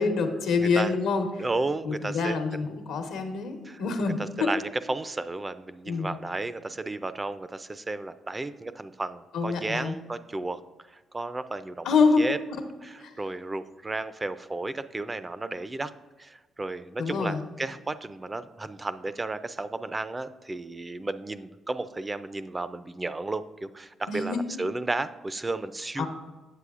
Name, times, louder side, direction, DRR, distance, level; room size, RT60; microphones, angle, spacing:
voice 1, 0.0-1.3 1.8-4.5 5.9-6.1 9.3-10.0 11.8-12.2 17.0-17.4 24.1-24.4 26.0-26.1, left 4 dB, 85° left, 5 dB, 0.9 m, -26 dB
voice 2, 0.6-0.9 1.4-2.4 3.6-3.8 4.2-10.6 11.1-12.4 12.8-15.9 16.2-26.0, right 2 dB, 20° right, 13 dB, 0.3 m, -33 dB
8.3 x 7.5 x 2.4 m, 1.2 s
cardioid pair, 90°, 0 cm